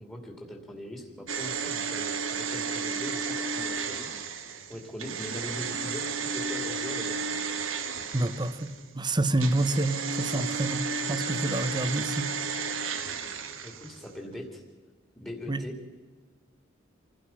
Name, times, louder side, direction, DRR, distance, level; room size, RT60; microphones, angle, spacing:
voice 1, 0.0-4.1 4.7-7.3 13.6-14.6 15.2-15.7, equal, 10° left, 1 dB, 2.6 m, -41 dB
sound 1, 1.3-8.9 9.4-14.1 14.3-14.4, right 5 dB, 90° right, 1.8 m, -33 dB
voice 2, 8.1-12.3 15.5-15.6, right 2 dB, 20° right, 12 dB, 0.9 m, -28 dB
27.0 x 16.5 x 5.8 m, 1.4 s
head